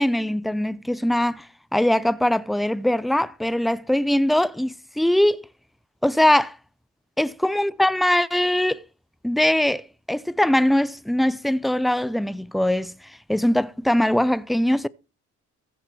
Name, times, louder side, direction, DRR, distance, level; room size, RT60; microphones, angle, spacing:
voice 1, 0.0-5.5 6.0-6.6 7.2-8.8 9.2-14.9, left 1 dB, ahead, 0.5 m, -22 dB
15.0 x 7.4 x 4.6 m
cardioid pair, 90°, 30 cm